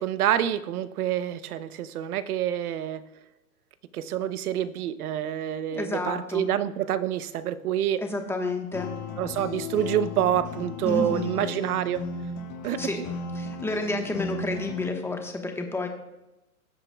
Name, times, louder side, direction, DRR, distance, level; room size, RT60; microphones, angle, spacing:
voice 1, 0.0-3.0 3.9-8.0 9.2-12.0 12.6-13.0, right 10 dB, 70° right, 14 dB, 0.9 m, -27 dB
voice 2, 5.7-6.5 8.0-8.9 10.8-11.5 12.8-13.0 13.4-15.9, left 2 dB, 5° left, 3 dB, 1.2 m, -30 dB
sound 1, 8.7-14.9, left 4 dB, 55° left, 2.0 m, -35 dB
18.5 x 7.7 x 2.3 m, 0.96 s
hypercardioid pair, 120°, 46 cm